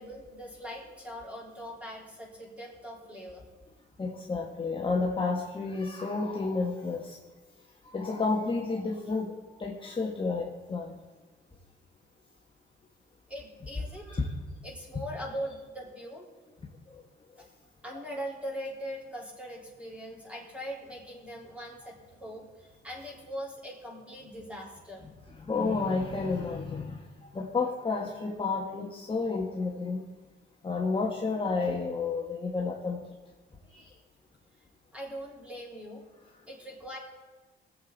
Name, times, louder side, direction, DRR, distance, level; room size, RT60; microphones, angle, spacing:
voice 1, 0.0-3.4 13.3-14.1 14.6-16.3 17.8-22.5 22.8-25.0 34.9-36.0 36.5-37.0, equal, 5° right, -3 dB, 4.1 m, -41 dB
voice 2, 4.0-7.2 7.8-11.0 14.1-14.3 16.9-17.0 25.0-30.0 30.6-33.1 33.7-33.9, left 4 dB, 25° left, -1 dB, 1.4 m, -31 dB
20.5 x 7.8 x 4.1 m, 1.3 s
cardioid pair, 90°, 20 cm